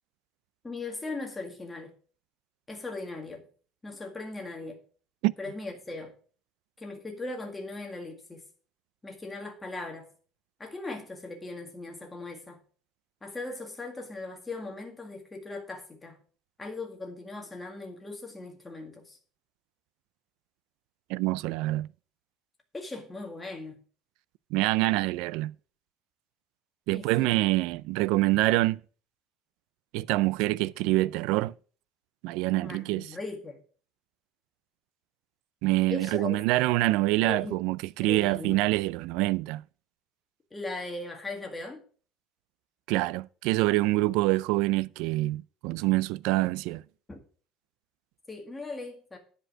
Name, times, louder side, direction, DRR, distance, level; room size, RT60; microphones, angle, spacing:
voice 1, 0.6-1.9 2.7-3.4 3.8-4.8 5.4-6.2 6.8-8.4 9.0-10.1 10.6-12.6 13.2-16.2 16.6-19.2 22.7-23.8 26.9-27.4 32.6-33.6 35.9-36.4 37.3-37.6 38.0-38.7 40.5-41.8 47.1-47.2 48.3-49.2, left 3 dB, 10° left, 1.9 m, -39 dB
voice 2, 21.1-21.9 24.5-25.5 26.9-28.8 29.9-31.5 32.2-33.1 35.6-39.6 42.9-46.8, right 19 dB, 75° right, 0.3 m, -26 dB
9.9 x 5.2 x 6.2 m
cardioid pair, 165°, 0 cm